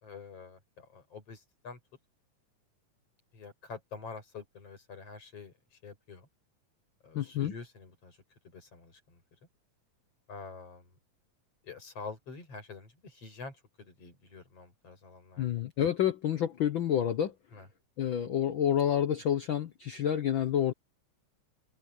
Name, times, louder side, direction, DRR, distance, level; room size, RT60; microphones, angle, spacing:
voice 1, 0.0-1.8 3.3-5.5 5.8-6.3 7.0-8.2 8.4-9.2 10.3-10.9 11.6-15.5 17.5-17.7, left 4 dB, 50° left, 6.9 m, -47 dB
voice 2, 7.1-7.5 15.4-17.3 18.0-20.7, left 10 dB, 75° left, 1.1 m, -29 dB
open air
omnidirectional pair, 3.5 m